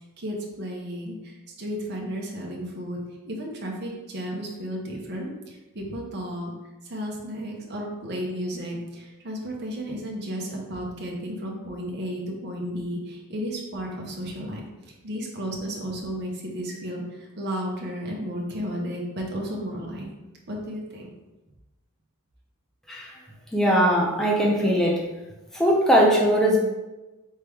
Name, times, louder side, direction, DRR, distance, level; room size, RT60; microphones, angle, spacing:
voice 1, 0.2-3.0 3.3-6.5 6.8-14.6 15.0-20.1 20.5-21.1, equal, 50° right, -1 dB, 0.9 m, -33 dB
voice 2, 23.5-25.0 25.5-26.6, equal, ahead, -3 dB, 0.7 m, -20 dB
4.4 x 3.3 x 3.5 m, 1.1 s
head